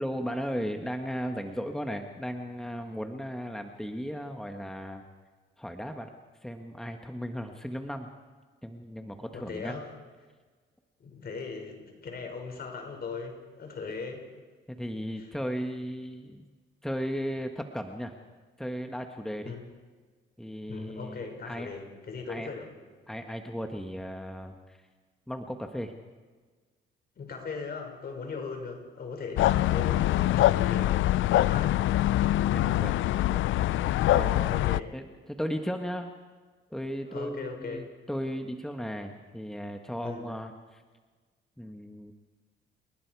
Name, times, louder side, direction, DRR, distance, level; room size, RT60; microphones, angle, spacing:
voice 1, 0.0-5.1 5.6-6.1 6.4-8.1 8.6-9.8 14.7-16.4 16.8-18.1 18.6-19.5 20.4-21.7 22.3-22.5 23.1-24.8 25.3-25.9 32.5-32.9 33.3-33.4 34.1-34.6 34.9-36.1 36.7-40.8 41.6-42.1, equal, ahead, 4 dB, 1.6 m, -36 dB
voice 2, 9.3-9.9 11.0-14.2 15.2-15.3 19.4-19.6 20.7-22.7 27.2-30.9 31.3-31.7 34.2-34.9 37.1-37.9 40.0-40.4, left 4 dB, 50° left, 3 dB, 5.9 m, -39 dB
sound 1, 29.4-34.8, left 14 dB, 80° left, 0.5 m, -24 dB
29.5 x 19.0 x 4.8 m, 1.4 s
cardioid pair, 90°, 20 cm